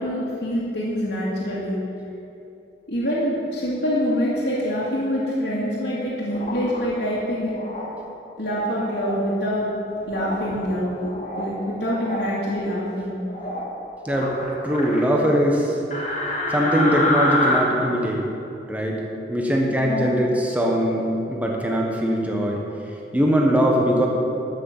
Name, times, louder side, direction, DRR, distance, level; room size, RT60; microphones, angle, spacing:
voice 1, 0.0-1.8 2.9-7.6 8.4-9.7 10.1-13.1 19.8-20.1, equal, 70° left, -9 dB, 2.3 m, -25 dB
sound 1, 6.3-6.9 7.6-7.9 8.6-9.2 10.1-10.5 10.9-11.5 11.8-12.3 13.3-13.7 14.1-15.0 15.9-17.6, left 1 dB, 40° left, 2.1 m, -27 dB
voice 2, 14.6-15.8 16.5-18.2 18.7-19.0 19.3-22.6 23.1-24.1, equal, 10° right, -1 dB, 1.4 m, -21 dB
12.5 x 6.6 x 7.3 m, 2.8 s
head